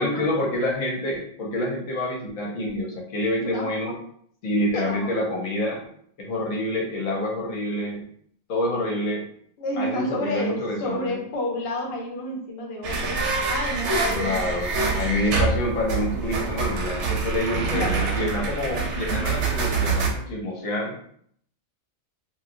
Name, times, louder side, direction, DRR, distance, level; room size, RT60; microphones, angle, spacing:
voice 1, 0.0-3.9 4.4-5.8 6.2-8.1 8.5-9.3 9.8-11.2 14.1-21.0, left 1 dB, 75° left, -1 dB, 1.1 m, -27 dB
voice 2, 3.4-4.0 4.7-5.2 9.6-14.5 17.7-18.0, left 1 dB, 55° left, -1 dB, 0.9 m, -30 dB
sound 1, 12.8-20.1, right 4 dB, 65° right, 0.8 m, -26 dB
3.0 x 2.4 x 2.6 m, 0.62 s
omnidirectional pair, 1.4 m